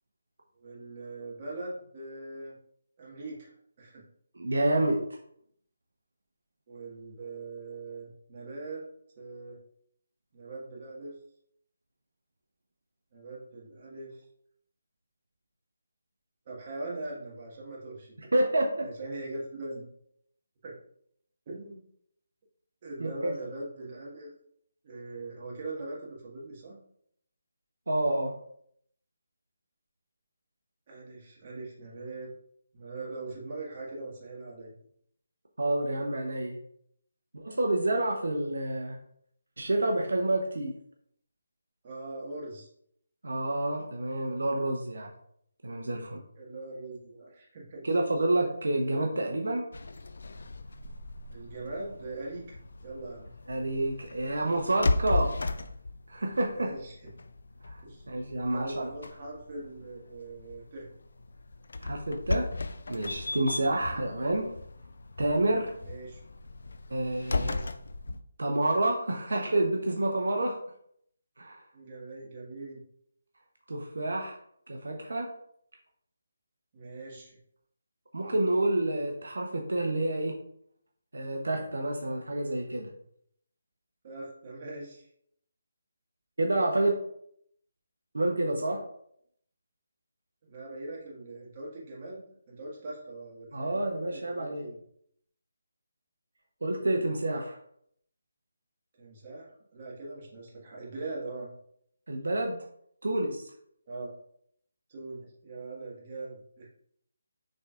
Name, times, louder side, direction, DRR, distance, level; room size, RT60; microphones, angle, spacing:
voice 1, 0.6-2.6 3.0-3.5 3.8-4.0 6.7-8.8 9.2-9.6 10.3-11.1 13.1-14.2 16.5-18.3 18.8-19.8 20.6-20.7 21.5-21.8 22.8-24.3 24.8-26.8 30.9-32.3 32.7-34.7 41.8-42.7 46.4-47.8 51.3-53.3 56.5-56.9 57.8-58.0 58.3-60.9 63.7-63.9 65.8-66.2 67.3-67.7 71.7-72.8 76.7-77.4 84.0-85.1 90.4-94.8 99.0-101.5 103.9-104.1 104.9-106.7, right 2 dB, 35° right, -4 dB, 1.6 m, -41 dB
voice 2, 4.3-5.0 18.3-18.9 23.0-23.4 27.9-28.3 35.6-36.6 37.3-39.0 39.6-40.7 43.2-45.1 45.6-46.2 47.8-49.7 53.5-55.3 56.1-56.7 57.7-57.8 58.1-58.9 61.8-62.5 62.9-64.5 65.2-65.7 66.9-67.5 68.4-70.6 71.4-71.6 73.7-74.4 74.7-75.3 78.1-80.3 81.1-82.9 86.4-87.0 88.1-88.8 93.5-94.7 96.6-97.6 102.1-102.6 103.0-103.4, right 1 dB, 80° right, 1 dB, 0.8 m, -28 dB
sound 1, 49.7-68.2, left 3 dB, 75° left, 0.4 m, -36 dB
6.4 x 3.4 x 2.4 m, 0.68 s
figure-of-eight pair, 160°, 0 cm